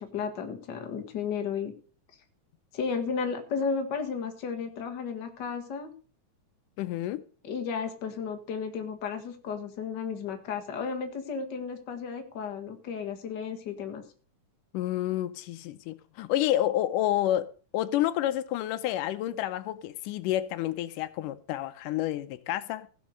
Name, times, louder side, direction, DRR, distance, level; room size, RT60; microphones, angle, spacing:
voice 1, 0.0-1.7 2.7-5.9 7.4-14.0, left 6 dB, 40° left, 1.8 m, -33 dB
voice 2, 6.8-7.2 14.7-22.9, left 13 dB, 90° left, 2.3 m, -29 dB
16.0 x 6.4 x 6.6 m
omnidirectional pair, 3.6 m